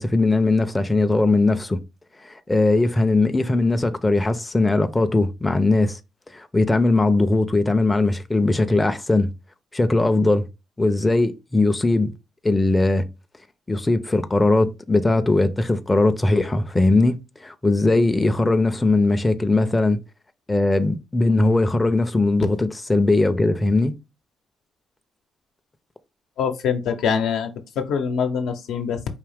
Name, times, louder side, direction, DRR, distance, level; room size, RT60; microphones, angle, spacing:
voice 1, 0.0-1.8 2.2-6.0 6.3-9.3 9.7-10.5 10.8-12.1 12.4-13.1 13.7-20.0 20.5-23.9, left 2 dB, 15° left, 0.5 m, -20 dB
voice 2, 26.4-27.5 27.8-29.0, left 7 dB, 80° left, 0.8 m, -24 dB
4.7 x 2.8 x 3.4 m
cardioid pair, 90°, 0 cm